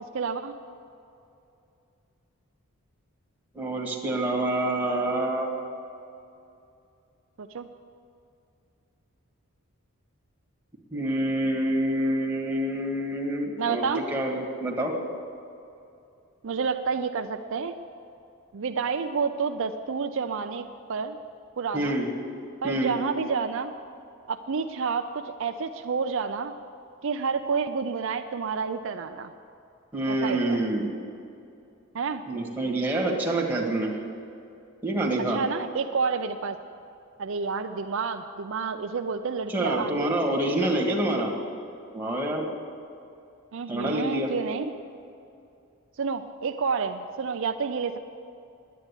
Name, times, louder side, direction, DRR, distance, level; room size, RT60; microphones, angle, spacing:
voice 1, 0.1-0.6 7.4-7.7 13.6-14.0 16.4-17.7 18.5-21.2 21.6-22.0 22.6-23.7 24.3-26.5 27.0-29.3 30.1-30.6 31.9-32.2 35.3-36.6 37.2-40.2 43.5-44.7 46.0-48.0, right 5 dB, 60° right, 7 dB, 0.5 m, -29 dB
voice 2, 3.5-5.5 10.9-14.9 21.7-22.1 22.6-23.0 29.9-30.9 32.3-33.9 34.8-35.4 39.5-41.3 41.9-42.5 43.7-44.3, right 1 dB, 10° right, -2 dB, 1.9 m, -27 dB
10.0 x 9.4 x 9.8 m, 2.6 s
head